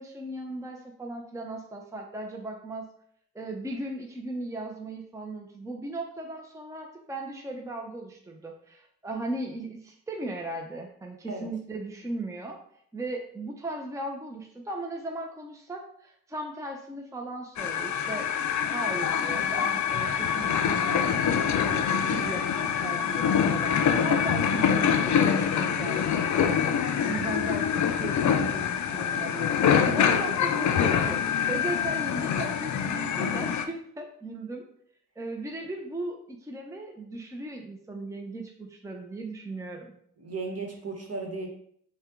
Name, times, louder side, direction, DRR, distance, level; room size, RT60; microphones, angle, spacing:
voice 1, 0.0-2.9 3.3-12.6 12.9-18.3 18.7-26.6 27.1-34.7 35.2-39.9, right 2 dB, 10° right, 2 dB, 0.6 m, -37 dB
sound 1, 17.6-33.7, left 8 dB, 60° left, 0.5 m, -25 dB
voice 2, 40.2-41.5, right 3 dB, 50° right, 2 dB, 1.2 m, -35 dB
5.4 x 2.3 x 3.7 m, 0.65 s
cardioid pair, 55°, 33 cm